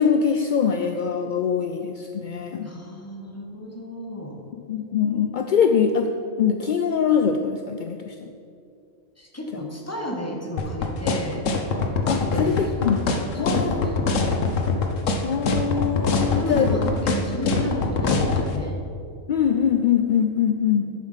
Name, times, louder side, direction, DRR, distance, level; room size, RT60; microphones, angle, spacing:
voice 1, 0.0-2.7 4.7-6.1 6.4-8.3 12.1-13.1 13.4-13.9 15.2-16.7 19.3-20.9, left 7 dB, 60° left, 5 dB, 0.5 m, -23 dB
voice 2, 2.6-4.4 9.2-11.4 12.1-12.9 13.3-14.2 16.4-18.8 20.8-20.9, left 1 dB, 10° left, 1 dB, 1.3 m, -32 dB
sound 1, 10.6-18.5, left 4 dB, 80° left, 1.3 m, -23 dB
10.0 x 7.0 x 5.7 m, 2.4 s
omnidirectional pair, 1.3 m